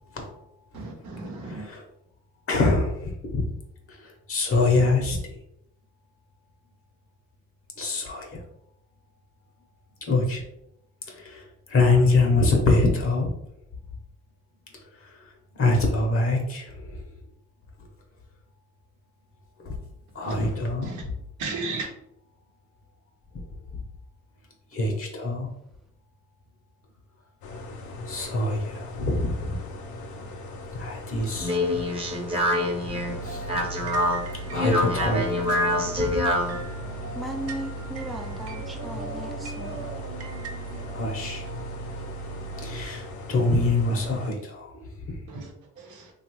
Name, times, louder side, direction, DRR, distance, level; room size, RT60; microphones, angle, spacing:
voice 1, 0.7-1.7 20.2-20.3 20.8-21.0 21.4-21.9 45.3-45.5 45.8-46.1, right 3 dB, 90° right, 1 dB, 0.8 m, -34 dB
voice 2, 1.4-1.8 2.5-3.5 3.9-5.2 7.8-8.4 10.1-10.4 11.1-13.3 15.0-15.3 15.5-17.1 19.6-19.8 20.1-21.1 24.7-25.5 28.1-29.6 30.7-31.6 33.2-33.4 34.5-36.2 40.9-41.4 42.6-45.2, left 2 dB, 45° left, 1 dB, 0.8 m, -25 dB
sound 1, 27.4-44.3, left 2 dB, 75° left, 0.6 m, -39 dB
Speech, 31.2-36.6, left 1 dB, 20° right, 0.7 m, -26 dB
sound 2, 32.9-42.9, right 4 dB, 55° right, 0.6 m, -37 dB
voice 3, 37.1-39.9, right 1 dB, ahead, 3 dB, 0.4 m, -37 dB
3.0 x 2.4 x 2.9 m, 0.81 s
cardioid pair, 90°, 30 cm